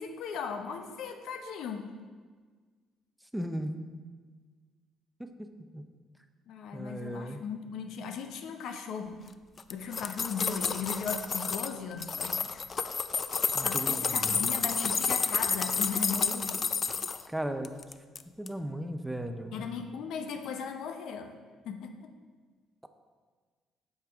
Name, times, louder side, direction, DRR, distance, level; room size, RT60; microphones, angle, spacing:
voice 1, 0.0-1.9 6.5-9.3 9.7-12.6 13.6-16.6 19.5-21.4 21.6-22.1, left 6 dB, 75° left, 7 dB, 0.7 m, -37 dB
voice 2, 3.3-3.7 5.2-5.8 6.7-7.4 13.5-14.5 17.3-17.7 18.4-19.7, right 1 dB, 5° right, 7 dB, 0.6 m, -36 dB
sound 1, 9.6-11.7 12.0-17.2 17.6-18.2 18.5-18.6, left 5 dB, 40° left, 0.3 m, -30 dB
8.0 x 6.6 x 3.5 m, 1.5 s
cardioid pair, 95°, 0 cm